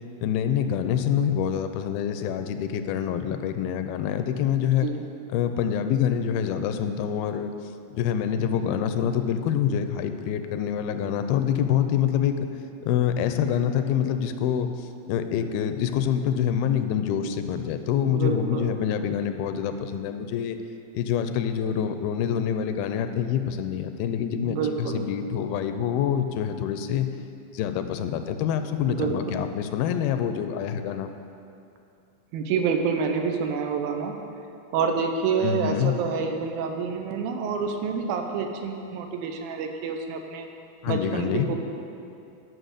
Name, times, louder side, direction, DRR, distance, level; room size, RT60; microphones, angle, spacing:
voice 1, 0.2-4.9 5.3-7.5 8.0-12.5 12.8-14.7 15.1-20.6 20.9-27.1 27.5-31.1 35.4-36.0 40.8-41.5, left 9 dB, 85° left, 9 dB, 2.4 m, -26 dB
voice 2, 4.6-5.0 18.1-18.7 24.4-25.0 28.9-29.4 32.3-34.1 34.7-40.5 40.9-41.6, right 6 dB, 80° right, 4 dB, 2.6 m, -28 dB
11.0 x 6.3 x 6.6 m, 2.6 s
omnidirectional pair, 4.3 m